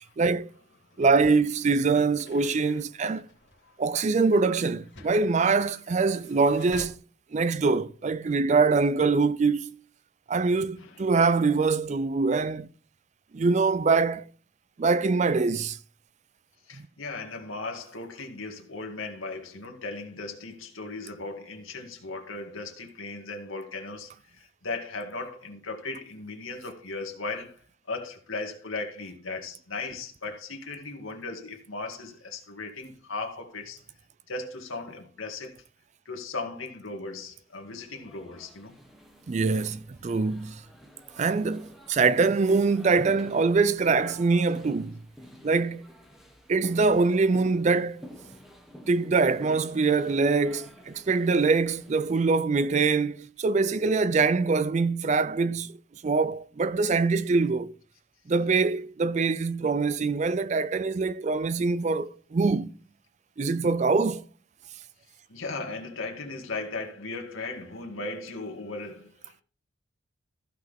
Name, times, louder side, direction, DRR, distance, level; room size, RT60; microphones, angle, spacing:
voice 1, 0.2-0.5 1.0-3.3 3.8-7.0 7.3-9.8 10.3-12.7 13.3-14.2 14.8-15.8 39.3-40.6 41.2-45.0 45.4-45.8 46.5-48.0 48.9-55.8 56.0-57.7 58.3-62.7 63.4-64.2, right 4 dB, 35° right, 0.4 m, -24 dB
sound 1, 1.0-6.9, left 3 dB, 60° left, 2.6 m, -51 dB
voice 2, 16.7-33.8 34.3-35.6 36.1-38.7 65.3-69.4, left 3 dB, 80° left, 2.0 m, -37 dB
sound 2, 37.7-52.4, equal, ahead, 1.3 m, -50 dB
15.0 x 5.8 x 3.5 m
head